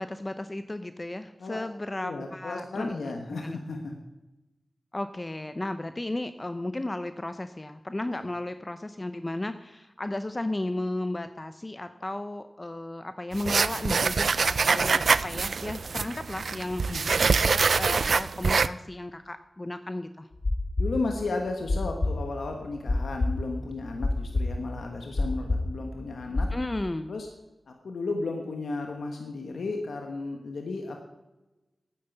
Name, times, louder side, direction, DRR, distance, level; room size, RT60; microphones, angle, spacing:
voice 1, 0.0-3.0 3.4-3.6 4.9-20.3 26.5-27.1, left 1 dB, 30° left, 10 dB, 0.7 m, -34 dB
voice 2, 2.0-3.9 8.1-8.2 16.9-17.0 20.8-26.5 27.1-27.3 27.7-31.0, left 3 dB, 90° left, 3 dB, 1.3 m, -34 dB
sound 1, 13.3-18.7, right 5 dB, 80° right, 0.4 m, -25 dB
sound 2, 20.3-26.5, left 2 dB, 65° left, 2.1 m, -27 dB
9.4 x 9.4 x 8.1 m, 1.0 s
cardioid pair, 45°, 0 cm